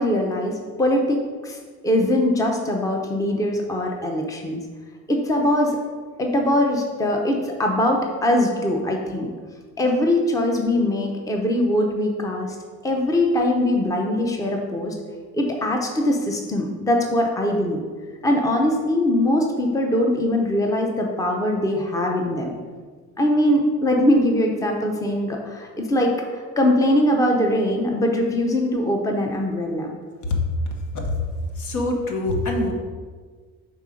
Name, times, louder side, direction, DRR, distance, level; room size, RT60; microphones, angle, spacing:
voice 1, 0.0-1.6 1.8-4.6 5.1-5.8 6.2-9.3 9.8-12.6 12.8-15.0 15.3-17.8 18.2-22.5 23.2-30.0, left 1 dB, 10° left, 1 dB, 0.6 m, -22 dB
voice 2, 31.6-32.7, left 1 dB, 70° left, 2 dB, 1.1 m, -24 dB
5.3 x 3.7 x 4.9 m, 1.5 s
cardioid pair, 130°, 31 cm